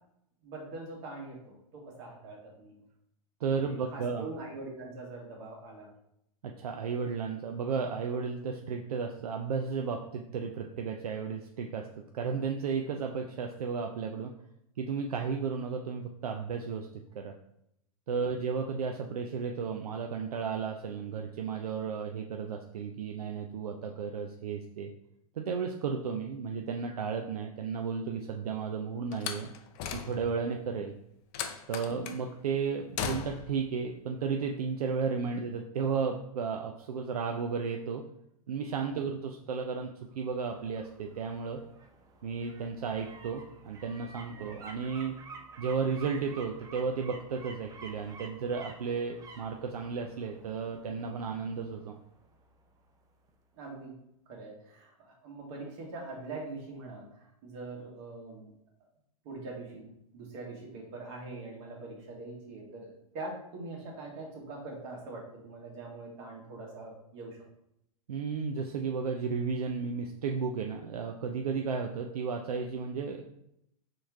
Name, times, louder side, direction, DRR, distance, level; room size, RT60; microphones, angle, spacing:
voice 1, 0.4-2.8 3.5-5.9 18.1-18.3 38.9-39.0 44.3-44.5 53.5-58.5 59.2-67.4, right 2 dB, 50° right, -1 dB, 1.7 m, -43 dB
voice 2, 3.4-4.2 6.4-11.9 12.1-14.3 14.8-16.9 17.1-17.3 18.1-24.9 25.4-29.5 29.9-30.9 31.7-38.0 38.5-39.9 40.1-41.6 42.2-45.1 45.6-51.9 68.1-73.2, right 5 dB, 80° right, 3 dB, 0.5 m, -33 dB
Slam, 29.1-30.5 31.3-32.2 33.0-33.6, left 7 dB, 40° left, 0.5 m, -37 dB
sound 1, 40.1-52.9 53.3-53.4, right 3 dB, 20° right, 0.5 m, -51 dB
4.3 x 3.1 x 3.5 m, 0.77 s
hypercardioid pair, 110°, 19 cm